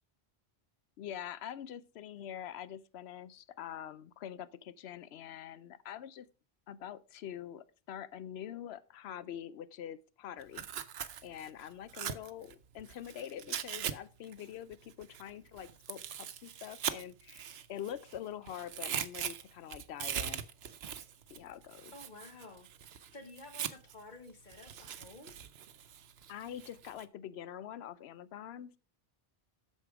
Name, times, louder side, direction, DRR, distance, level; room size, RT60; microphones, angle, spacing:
voice 1, 1.0-6.3 6.7-10.7 11.2-20.4 21.3-21.9 26.3-28.8, left 10 dB, 80° left, 0.9 m, -45 dB
Tearing, 10.4-13.9 14.2-18.2 18.5-24.0 24.5-27.0, right 9 dB, 75° right, 0.9 m, -41 dB
voice 2, 21.9-22.7 23.1-25.3, left 2 dB, 50° left, 1.4 m, -51 dB
8.0 x 6.7 x 4.7 m
omnidirectional pair, 1.1 m